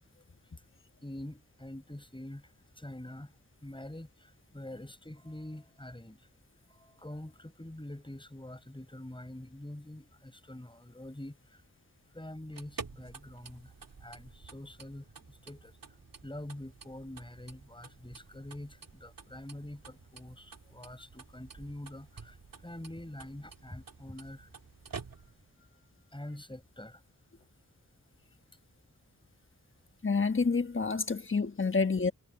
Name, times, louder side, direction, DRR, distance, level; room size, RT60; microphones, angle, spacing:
voice 1, 1.0-3.3 3.6-6.3 6.7-11.6 12.1-13.7 14.0-15.7 16.2-24.5 26.1-27.0, left 1 dB, 15° left, 4.7 m, -45 dB
sound 1, 12.4-25.6, right 5 dB, 75° right, 2.9 m, -50 dB
voice 2, 30.0-32.1, left 4 dB, 35° left, 1.3 m, -28 dB
wide cardioid pair, 80°, 34 cm